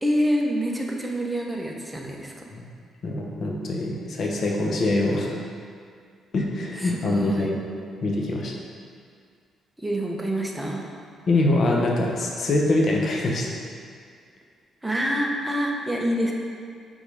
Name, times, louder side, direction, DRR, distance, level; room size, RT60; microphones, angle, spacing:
voice 1, 0.0-2.5 6.8-7.5 9.8-10.9 14.8-16.3, equal, 10° right, 0 dB, 0.8 m, -26 dB
voice 2, 3.0-5.4 6.3-7.6 8.0-8.5 11.3-13.5, left 2 dB, 50° left, -1 dB, 0.9 m, -24 dB
5.2 x 3.7 x 4.9 m, 2.2 s
cardioid pair, 90°, 0 cm